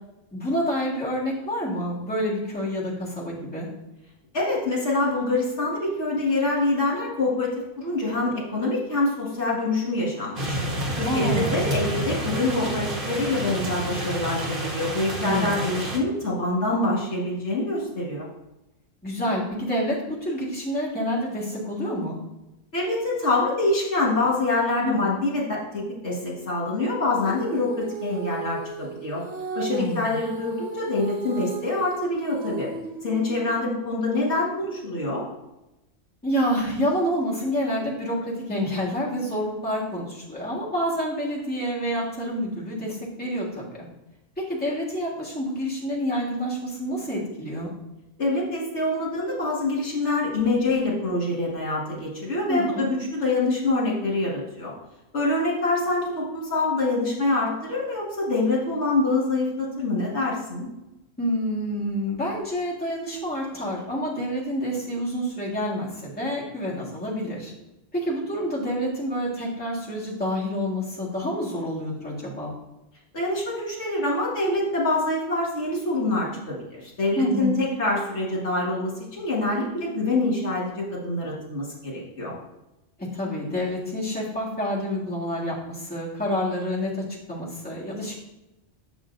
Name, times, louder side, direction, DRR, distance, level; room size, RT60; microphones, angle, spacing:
voice 1, 0.3-3.7 11.0-11.5 15.2-15.8 19.0-22.2 24.8-25.2 29.7-30.1 36.2-43.9 44.4-47.7 52.5-52.9 61.2-67.5 67.9-72.5 77.2-77.6 83.1-88.2, equal, 5° left, -7 dB, 1.7 m, -28 dB
voice 2, 4.3-10.6 11.0-18.3 22.7-29.2 29.5-32.7 33.0-35.2 48.2-54.7 55.1-60.7 73.1-82.3, left 2 dB, 65° left, -5 dB, 2.1 m, -25 dB
sound 1, 10.4-16.0, right 1 dB, 45° right, 1.2 m, -29 dB
Female singing, 27.2-33.7, right 5 dB, 65° right, 1.5 m, -35 dB
7.9 x 7.0 x 2.6 m, 0.95 s
omnidirectional pair, 1.3 m